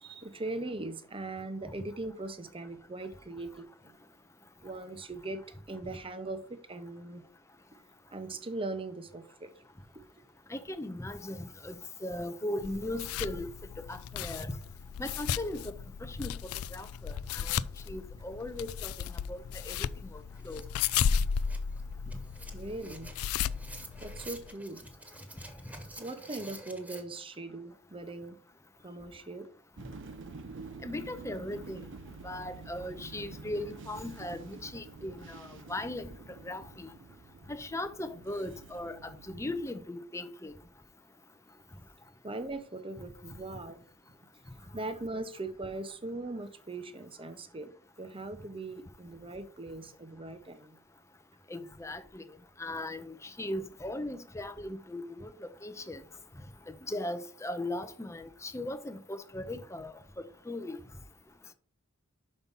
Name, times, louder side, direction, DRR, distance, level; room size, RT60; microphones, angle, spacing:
voice 1, 0.0-3.9 4.6-5.4 5.7-7.2 8.1-9.6 9.9-10.2 22.0-22.1 22.5-23.1 24.0-24.9 26.0-28.4 28.8-29.5 42.2-43.9 44.3-47.7 48.0-50.8, right 2 dB, 25° right, 0.9 m, -40 dB
voice 2, 10.5-11.7 12.0-13.5 13.8-14.5 15.0-15.7 16.0-16.3 16.7-17.6 17.9-18.9 19.3-20.6 30.8-31.8 32.2-36.1 36.4-36.9 37.5-40.5 51.5-52.2 52.6-56.0 56.9-59.9 60.5-60.8, left 1 dB, 15° left, 0.6 m, -38 dB
sound 1, 12.6-24.5, left 7 dB, 80° left, 0.3 m, -35 dB
sound 2, 19.7-19.8 20.1-27.0, right 1 dB, 5° right, 1.3 m, -49 dB
sound 3, 29.8-39.6, right 3 dB, 60° right, 0.7 m, -48 dB
6.0 x 5.4 x 5.4 m
head